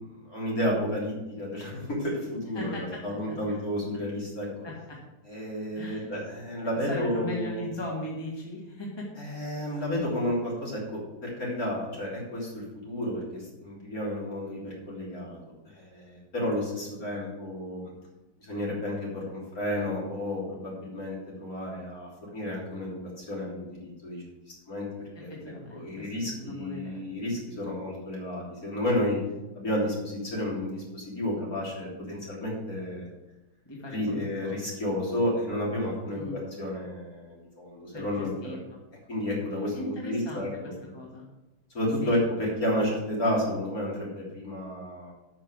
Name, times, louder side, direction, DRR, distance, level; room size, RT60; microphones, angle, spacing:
voice 1, 0.1-4.5 5.3-7.6 9.2-15.4 15.6-17.9 18.4-24.2 24.7-25.3 25.7-29.2 29.6-33.1 33.9-38.3 39.1-40.7 41.7-45.1, left 1 dB, 45° left, -4 dB, 3.8 m, -31 dB
voice 2, 2.6-3.0 3.3-3.6 4.6-5.0 5.7-6.1 6.9-9.1 25.3-27.0 33.7-34.6 36.2-36.4 37.9-38.8 39.7-40.6 40.9-41.2 42.0-42.2, left 1 dB, 15° left, -3 dB, 1.8 m, -38 dB
8.7 x 6.1 x 8.0 m, 1.0 s
omnidirectional pair, 2.1 m